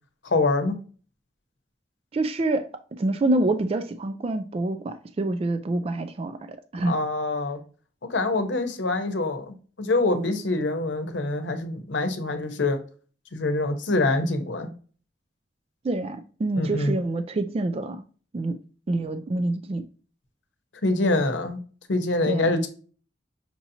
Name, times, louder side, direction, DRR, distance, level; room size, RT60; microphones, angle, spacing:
voice 1, 0.2-0.8 6.8-7.6 8.0-12.8 13.3-14.7 16.6-17.0 20.8-21.6 21.9-22.7, left 2 dB, 85° left, 0.8 m, -25 dB
voice 2, 2.1-2.7 3.0-6.4 6.7-7.0 15.8-18.0 18.3-18.6 18.9-19.8 22.2-22.5, right 2 dB, 30° right, 0.3 m, -26 dB
5.9 x 2.8 x 2.7 m
head